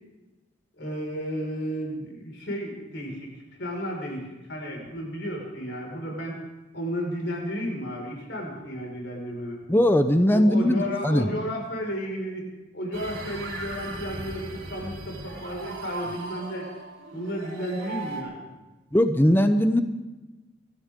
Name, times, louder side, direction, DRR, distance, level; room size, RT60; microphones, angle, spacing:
voice 1, 0.8-3.3 3.6-6.3 6.7-9.6 10.3-12.5 12.7-16.7 17.1-18.4, equal, 65° left, 0 dB, 5.2 m, -33 dB
voice 2, 9.7-11.3 18.9-19.8, equal, 10° left, 8 dB, 0.7 m, -20 dB
sound 1, 12.9-18.2, right 2 dB, 85° right, 3.6 m, -38 dB
24.5 x 13.5 x 3.7 m, 1.1 s
head